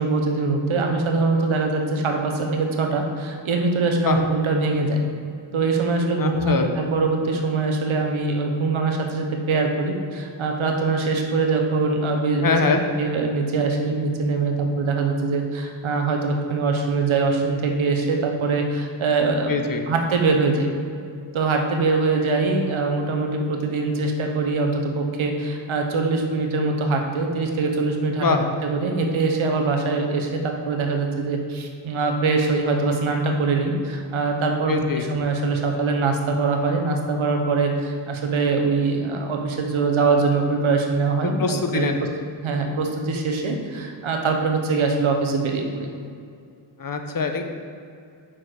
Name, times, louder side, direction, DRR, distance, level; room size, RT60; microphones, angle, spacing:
voice 1, 0.0-5.0 5.5-19.6 19.9-20.7 21.3-28.3 28.6-41.9 42.4-45.9, right 3 dB, 85° right, 3 dB, 1.0 m, -23 dB
voice 2, 6.2-6.7 12.4-12.8 19.5-19.8 28.2-28.4 34.7-35.0 41.2-42.0 46.8-47.4, left 4 dB, 45° left, 5 dB, 0.8 m, -23 dB
5.9 x 4.6 x 6.3 m, 2.4 s
cardioid pair, 60°, 47 cm